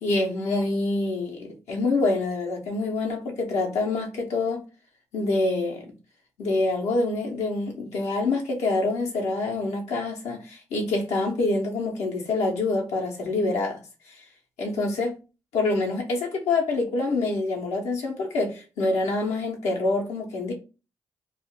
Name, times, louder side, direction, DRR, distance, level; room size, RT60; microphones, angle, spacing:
voice 1, 0.0-4.6 5.1-5.9 6.4-13.8 14.1-14.2 14.6-15.1 15.5-20.5, left 2 dB, 85° left, 0.8 m, -26 dB
2.4 x 2.1 x 3.6 m
supercardioid pair, 45°, 11 cm